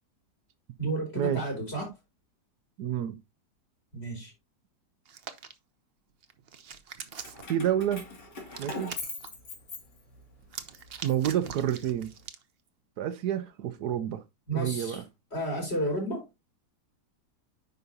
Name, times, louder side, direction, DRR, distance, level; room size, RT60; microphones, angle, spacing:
voice 1, 0.8-2.0 3.9-4.3 14.5-15.0 15.3-16.3, right 1 dB, 35° left, 4.6 m, -32 dB
voice 2, 2.8-3.2 7.5-8.0 8.6-8.9 11.0-12.1 13.0-14.2 14.5-15.0, right 10 dB, 75° right, 1.2 m, -29 dB
Hands, 5.1-5.5 6.2-7.5 8.5-9.3 10.4-12.4, right 7 dB, 45° right, 0.8 m, -42 dB
Keys jangling, 7.2-10.3 10.8-12.1, left 3 dB, 85° left, 3.0 m, -41 dB
9.5 x 5.7 x 2.7 m
omnidirectional pair, 1.8 m